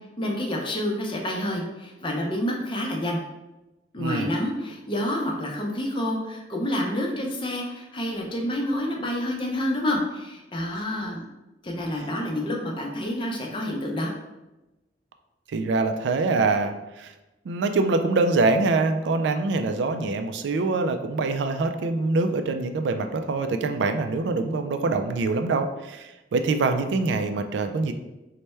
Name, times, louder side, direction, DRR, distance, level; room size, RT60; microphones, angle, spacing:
voice 1, 0.2-3.2 3.9-11.2 11.6-14.1, left 1 dB, 30° left, 0 dB, 0.5 m, -28 dB
voice 2, 4.0-4.3 15.5-17.1 17.5-27.9, right 3 dB, 80° right, 7 dB, 0.3 m, -24 dB
3.3 x 2.1 x 4.2 m, 1.0 s
head